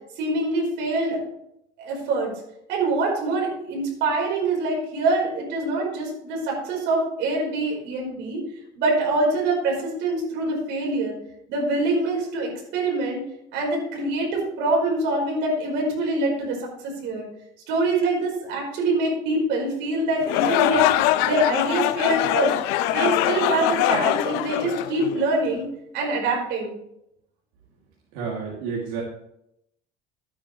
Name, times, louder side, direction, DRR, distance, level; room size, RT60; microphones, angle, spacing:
voice 1, 0.2-1.2 1.8-2.3 2.7-8.4 8.8-11.1 11.5-13.2 13.5-17.2 17.7-20.9 21.2-22.5 22.9-25.7 25.9-26.7, right 2 dB, 60° right, -1 dB, 4.8 m, -24 dB
sound 1, 20.2-25.4, left 14 dB, 80° left, 0.6 m, -23 dB
voice 2, 28.1-29.0, right 5 dB, 85° right, -4 dB, 3.0 m, -30 dB
13.0 x 9.5 x 3.3 m, 0.78 s
cardioid pair, 150°, 21 cm